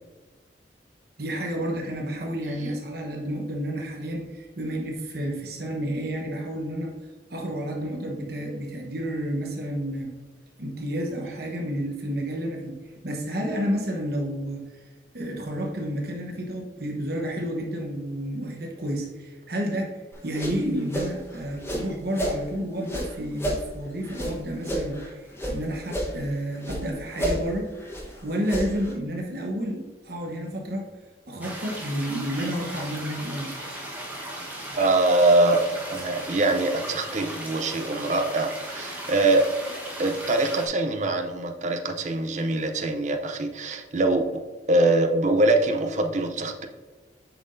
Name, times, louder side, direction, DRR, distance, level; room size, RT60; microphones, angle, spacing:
voice 1, 1.2-6.9 7.3-10.1 10.6-12.7 13.0-14.8 15.1-20.0 20.2-27.7 28.2-30.9 31.3-33.6, equal, 60° right, 0 dB, 1.0 m, -30 dB
sound 1, 20.1-22.4 22.8-25.6 25.8-26.8 27.1-28.9, equal, 15° left, 1.0 m, -31 dB
sound 2, 31.4-40.7, right 1 dB, 10° right, 1.1 m, -37 dB
voice 2, 34.8-39.5 40.0-44.4 44.7-46.7, right 2 dB, 40° right, 5 dB, 0.6 m, -23 dB
7.0 x 5.6 x 2.6 m, 1.3 s
head